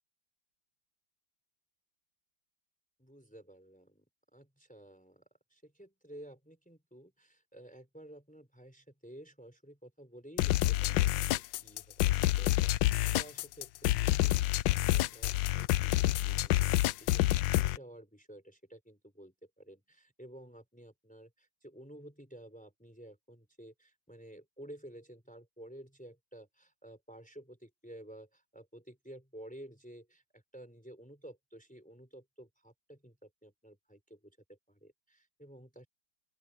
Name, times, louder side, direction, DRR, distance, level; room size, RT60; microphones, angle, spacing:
voice 1, 3.0-4.1 4.3-35.9, right 1 dB, 5° left, 3.8 m, -53 dB
sound 1, 10.4-17.8, left 16 dB, 75° left, 1.2 m, -28 dB
open air
omnidirectional pair, 2.1 m